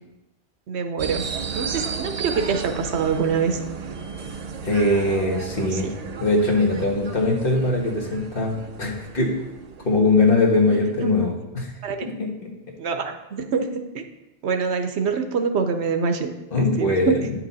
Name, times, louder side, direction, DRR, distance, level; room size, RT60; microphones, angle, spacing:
voice 1, 0.7-1.2 1.5-3.6 5.6-5.9 10.7-11.3 11.8-12.1 12.8-14.0 14.4-16.3 16.6-17.1, right 5 dB, 80° right, 7 dB, 1.0 m, -25 dB
sound 1, 1.0-10.9, right 6 dB, 45° right, 0.6 m, -34 dB
voice 2, 4.6-5.9 6.2-8.5 8.8-9.3 9.8-11.6 12.0-12.5 16.5-17.3, left 2 dB, 55° left, -1 dB, 1.6 m, -21 dB
9.4 x 5.8 x 4.1 m, 1.0 s
omnidirectional pair, 1.1 m